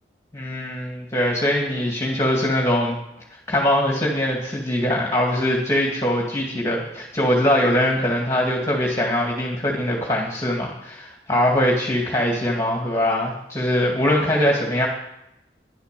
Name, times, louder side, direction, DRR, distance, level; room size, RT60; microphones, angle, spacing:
voice 1, 0.3-3.0 3.5-14.9, left 1 dB, 15° left, -1 dB, 2.2 m, -22 dB
12.5 x 11.0 x 6.8 m, 0.83 s
head